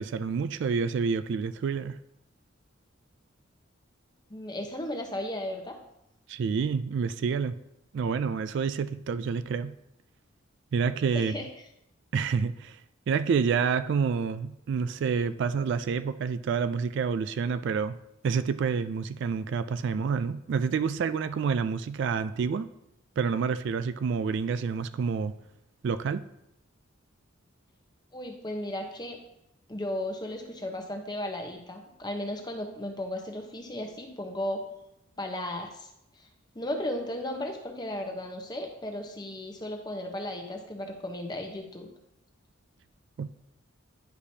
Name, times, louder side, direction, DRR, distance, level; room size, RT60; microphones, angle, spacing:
voice 1, 0.0-2.0 6.3-7.5 7.9-9.7 10.7-11.4 12.1-12.8 13.1-18.0 18.2-22.7 23.2-25.3 25.8-26.3 43.2-43.3, right 5 dB, 60° right, 13 dB, 0.3 m, -28 dB
voice 2, 4.3-5.8 11.1-11.5 28.1-29.2 29.7-34.7 35.2-35.9 36.2-36.3 36.5-41.9, left 1 dB, 20° left, 3 dB, 0.9 m, -35 dB
10.0 x 5.0 x 2.8 m, 0.82 s
head